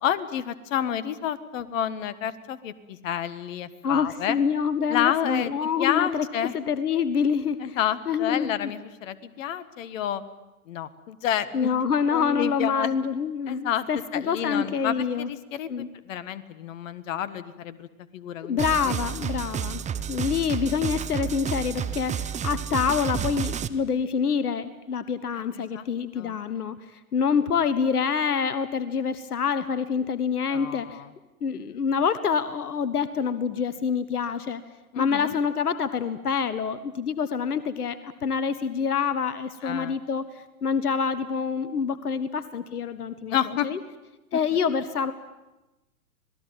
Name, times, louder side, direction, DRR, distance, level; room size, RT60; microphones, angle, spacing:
voice 1, 0.0-4.4 4.9-5.5 5.8-6.6 7.6-10.2 10.7-11.7 12.1-12.9 13.5-13.9 14.1-17.9 18.1-19.0 25.3-25.9 26.2-26.4 30.5-31.1 34.9-35.3 39.6-40.0 43.3-43.7 44.3-44.4, left 10 dB, 60° left, 14 dB, 1.7 m, -30 dB
voice 2, 3.8-6.3 6.5-7.8 8.1-8.7 11.5-15.3 15.7-15.9 18.4-19.8 20.1-31.0 31.4-34.6 35.0-43.4 43.6-43.8 44.3-45.1, left 6 dB, 85° left, 13 dB, 1.4 m, -26 dB
sound 1, 18.6-23.7, right 8 dB, 15° right, 1.0 m, -30 dB
26.5 x 19.0 x 9.3 m, 1.0 s
hypercardioid pair, 110°, 44 cm